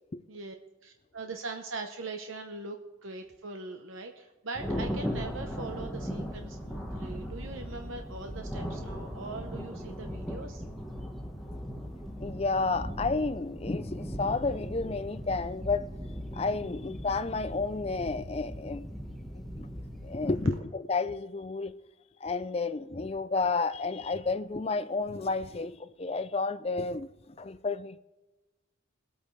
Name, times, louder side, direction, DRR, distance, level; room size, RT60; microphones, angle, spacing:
voice 1, 0.8-10.6, right 3 dB, 80° right, 0.9 m, -41 dB
Thunder, 4.5-20.6, equal, ahead, 1.2 m, -38 dB
voice 2, 12.2-15.9 16.3-18.9 20.0-21.8 22.2-27.1 27.4-28.0, left 3 dB, 30° left, 0.4 m, -31 dB
20.5 x 8.6 x 3.3 m
head